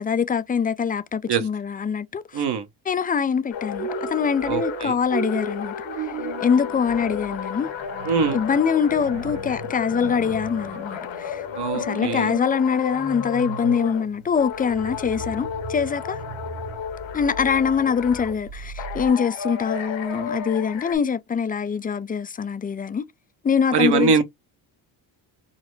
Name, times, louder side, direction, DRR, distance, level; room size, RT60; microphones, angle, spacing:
voice 1, 0.0-2.4 2.9-6.1 6.4-7.7 8.3-11.4 11.7-16.2 17.1-23.0 23.4-24.2, left 6 dB, 20° left, 0.4 m, -24 dB
voice 2, 2.3-2.7 4.5-5.0 8.0-8.4 11.5-12.3 23.7-24.2, right 5 dB, 55° right, 1.1 m, -22 dB
sound 1, 3.5-14.1 14.3-18.4 18.8-21.0, left 8 dB, 60° left, 1.2 m, -33 dB
sound 2, 3.7-19.1, right 5 dB, 80° right, 1.0 m, -37 dB
3.9 x 2.1 x 3.1 m
supercardioid pair, 75°, 50 cm